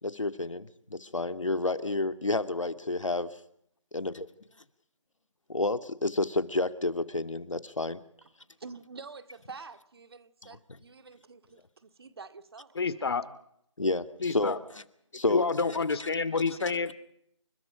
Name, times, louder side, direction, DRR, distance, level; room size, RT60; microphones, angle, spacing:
voice 1, 0.0-3.3 3.9-4.3 5.5-8.0 13.8-14.6 15.1-15.4 16.0-16.1, left 2 dB, 80° left, 10 dB, 2.3 m, -30 dB
voice 2, 8.6-12.8, right 4 dB, 50° right, 10 dB, 2.2 m, -47 dB
voice 3, 12.7-13.2 14.2-14.6 15.3-16.9, left 4 dB, 55° left, 15 dB, 2.5 m, -28 dB
29.5 x 25.5 x 5.1 m, 0.70 s
figure-of-eight pair, 155°, 16 cm